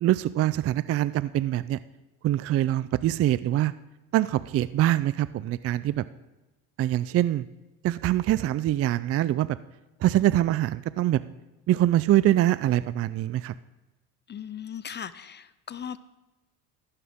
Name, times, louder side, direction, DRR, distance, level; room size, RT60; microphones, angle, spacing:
voice 1, 0.0-1.8 2.2-3.7 4.1-6.0 6.8-7.5 7.8-9.6 10.0-11.2 11.7-13.5, right 13 dB, 35° right, 16 dB, 0.4 m, -24 dB
voice 2, 14.3-16.0, left 8 dB, 25° left, 16 dB, 0.5 m, -38 dB
15.0 x 14.5 x 3.6 m, 1.0 s
cardioid pair, 115°, 41 cm